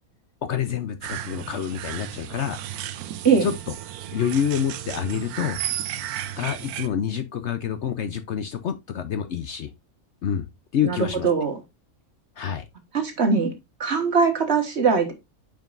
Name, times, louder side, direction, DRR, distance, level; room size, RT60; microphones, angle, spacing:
voice 1, 0.4-2.6 3.4-3.5 4.1-5.6 6.4-9.7 10.2-10.4 10.7-11.3 12.4-12.7, left 8 dB, 60° left, 0.8 m, -27 dB
sound 1, 1.0-6.9, right 11 dB, 90° right, 1.1 m, -34 dB
voice 2, 11.2-11.6 12.9-13.5 13.8-15.1, right 5 dB, 50° right, 1.7 m, -21 dB
9.0 x 5.2 x 2.5 m
omnidirectional pair, 1.5 m